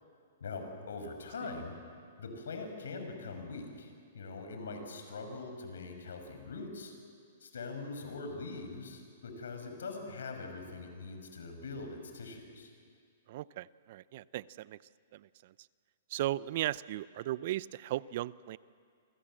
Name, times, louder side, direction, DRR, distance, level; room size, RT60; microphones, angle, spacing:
voice 1, 0.4-1.7 2.2-6.9 7.4-12.7, left 3 dB, 75° left, 5 dB, 6.0 m, -42 dB
voice 2, 13.3-14.8 15.1-15.5 16.1-18.6, right 14 dB, 55° right, 20 dB, 0.6 m, -36 dB
28.5 x 25.0 x 7.6 m, 2.2 s
hypercardioid pair, 120°, 0 cm